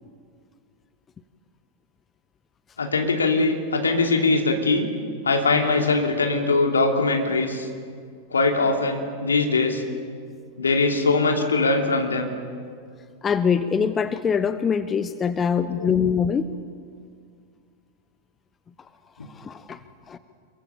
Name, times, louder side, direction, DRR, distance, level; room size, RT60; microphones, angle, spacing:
voice 1, 2.8-4.9 5.2-7.7 8.3-9.8 10.6-12.3 15.7-16.0, left 3 dB, 75° left, 3 dB, 2.9 m, -21 dB
voice 2, 13.2-16.5 19.4-19.8 20.1-20.2, left 6 dB, 20° left, 13 dB, 0.8 m, -23 dB
26.5 x 23.0 x 7.2 m, 2.2 s
figure-of-eight pair, 90°, 0 cm